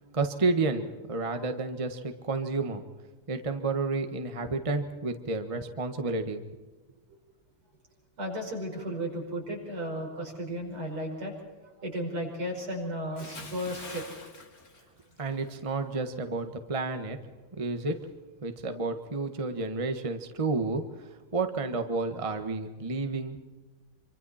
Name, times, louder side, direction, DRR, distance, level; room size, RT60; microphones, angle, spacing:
voice 1, 0.1-2.8 3.3-6.4 15.2-17.2 17.6-18.0 18.4-23.4, right 3 dB, 20° right, 6 dB, 1.2 m, -31 dB
voice 2, 8.2-11.3 11.8-14.0, equal, 70° right, 1 dB, 6.1 m, -34 dB
Bathtub (filling or washing) / Splash splatter, 13.2-15.6 15.9-16.2, left 3 dB, 40° left, 2.6 m, -45 dB
26.5 x 25.0 x 4.3 m, 1.2 s
omnidirectional pair, 2.4 m